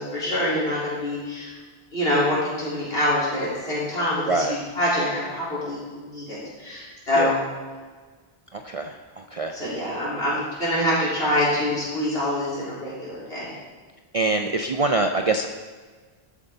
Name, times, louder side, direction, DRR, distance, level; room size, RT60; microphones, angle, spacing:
voice 1, 0.0-1.5 1.9-7.4 9.5-13.5, left 1 dB, 65° left, -8 dB, 4.2 m, -25 dB
voice 2, 8.5-9.5 14.1-15.5, right 3 dB, 45° right, 5 dB, 0.5 m, -24 dB
13.5 x 8.2 x 3.9 m, 1.4 s
omnidirectional pair, 1.1 m